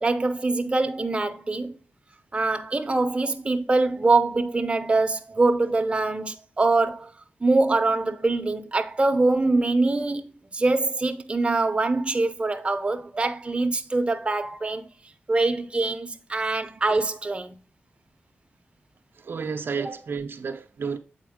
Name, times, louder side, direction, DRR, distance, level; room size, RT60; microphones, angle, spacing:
voice 1, 0.0-1.8 2.3-7.1 7.4-14.9 15.3-17.5, right 3 dB, 25° right, 0.7 m, -24 dB
voice 2, 19.2-21.0, right 5 dB, 65° right, 0.5 m, -31 dB
7.8 x 4.2 x 3.6 m
wide cardioid pair, 85°, 4 cm